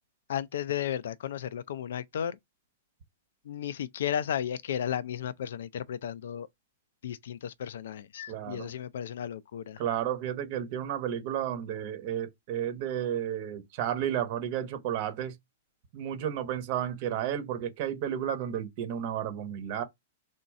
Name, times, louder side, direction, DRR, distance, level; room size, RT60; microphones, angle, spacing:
voice 1, 0.3-2.4 3.4-6.5 7.0-9.8, left 9 dB, 75° left, 0.4 m, -34 dB
voice 2, 8.3-8.7 9.8-15.3 15.9-19.8, right 10 dB, 50° right, 1.0 m, -32 dB
3.6 x 2.7 x 4.1 m
hypercardioid pair, 130°, 0 cm